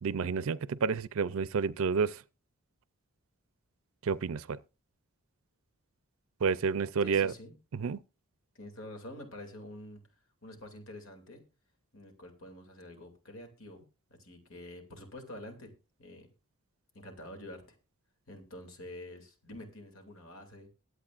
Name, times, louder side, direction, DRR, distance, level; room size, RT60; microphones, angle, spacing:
voice 1, 0.0-2.2 4.0-4.6 6.4-7.3 7.7-8.0, right 5 dB, 75° right, 0.4 m, -30 dB
voice 2, 7.0-7.5 8.5-10.0 10.4-11.4 11.9-13.8 14.1-15.7 16.0-16.3 16.9-17.8 18.3-20.7, left 1 dB, 75° left, 2.6 m, -47 dB
22.0 x 8.1 x 2.5 m
head